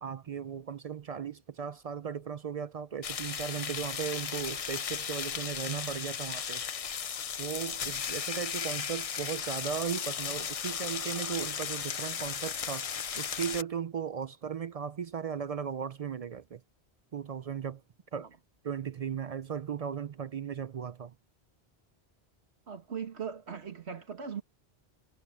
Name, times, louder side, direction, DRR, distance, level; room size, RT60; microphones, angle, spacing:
voice 1, 0.0-6.6 7.4-12.9 13.2-16.6 17.1-17.8 18.1-18.3 18.6-21.1, right 7 dB, 50° right, 0.4 m, -36 dB
sound 1, 3.0-13.6, left 7 dB, 45° left, 0.5 m, -36 dB
voice 2, 22.7-24.4, right 7 dB, 85° right, 1.9 m, -39 dB
omnidirectional pair, 1.1 m